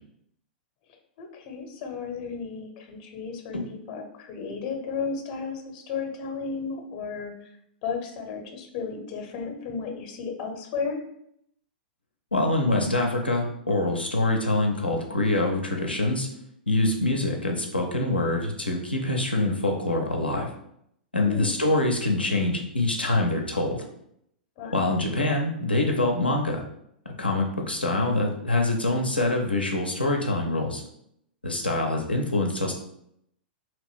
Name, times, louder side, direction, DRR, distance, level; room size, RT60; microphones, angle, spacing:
voice 1, 1.2-7.3 7.8-11.0 21.3-21.5 24.6-24.9, left 5 dB, 45° left, 4 dB, 0.6 m, -34 dB
voice 2, 12.3-16.3 16.7-20.5 21.1-23.8 24.7-26.6 27.2-30.8 31.4-32.7, left 2 dB, 90° left, 1 dB, 0.4 m, -25 dB
2.9 x 2.5 x 3.4 m, 0.73 s
figure-of-eight pair, 100°, 5 cm